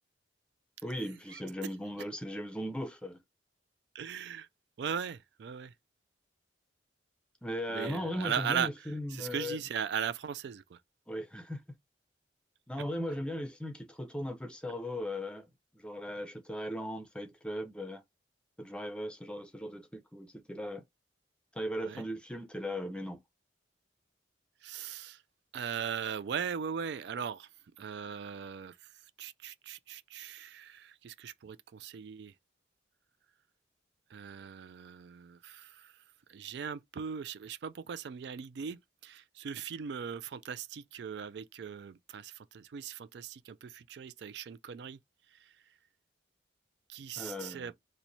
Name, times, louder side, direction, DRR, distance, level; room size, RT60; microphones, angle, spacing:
voice 1, 0.8-3.2 7.4-9.6 11.1-11.6 12.7-18.0 18.6-20.8 21.5-23.2 47.2-47.7, equal, 5° left, 0.5 m, -38 dB
voice 2, 3.9-4.5 4.8-5.7 7.7-8.7 9.1-10.8 21.8-22.0 24.6-25.2 25.5-27.5 27.8-28.8 29.2-32.3 34.1-35.9 36.3-45.0 45.4-45.5 46.9-47.7, right 7 dB, 60° right, 0.3 m, -39 dB
3.0 x 2.1 x 4.0 m
head